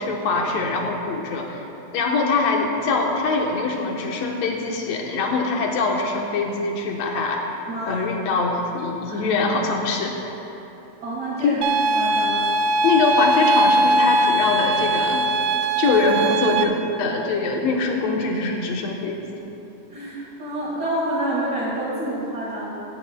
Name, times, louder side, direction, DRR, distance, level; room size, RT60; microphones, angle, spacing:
voice 1, 0.0-1.6 1.9-7.4 7.9-10.3 11.4-11.6 12.8-15.3 15.8-19.4, left 3 dB, 65° left, 1 dB, 2.1 m, -23 dB
voice 2, 7.7-8.0 9.1-9.2 11.0-11.6 11.9-12.4 12.7-12.8 19.9-22.7, right 1 dB, 55° right, -10 dB, 3.2 m, -28 dB
sound 1, 11.6-16.6, right 1 dB, 80° right, 1.5 m, -20 dB
20.0 x 10.0 x 2.2 m, 2.9 s
omnidirectional pair, 3.6 m